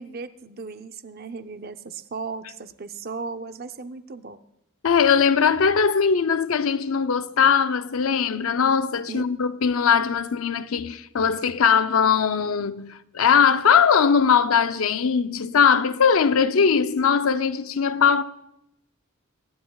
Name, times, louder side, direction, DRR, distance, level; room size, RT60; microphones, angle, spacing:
voice 1, 0.0-4.4 7.4-7.5 9.1-9.3, right 4 dB, 45° right, 0.6 m, -36 dB
voice 2, 4.8-18.2, left 6 dB, 75° left, 0.5 m, -20 dB
24.0 x 10.0 x 2.3 m
head